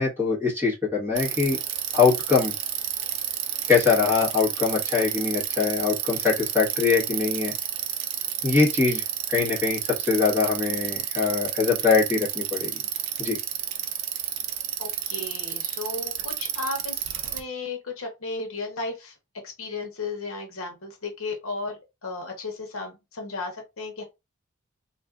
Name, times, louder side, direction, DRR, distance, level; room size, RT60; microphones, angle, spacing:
voice 1, 0.0-1.6 1.9-2.5 3.7-7.5 8.4-9.0 9.3-12.7 13.2-13.4, left 5 dB, 10° right, 1.5 m, -23 dB
Bicycle, 1.2-17.4, right 10 dB, 60° right, 0.4 m, -31 dB
voice 2, 14.8-19.1 19.4-24.0, left 3 dB, 70° left, 0.9 m, -34 dB
3.2 x 2.5 x 2.4 m
head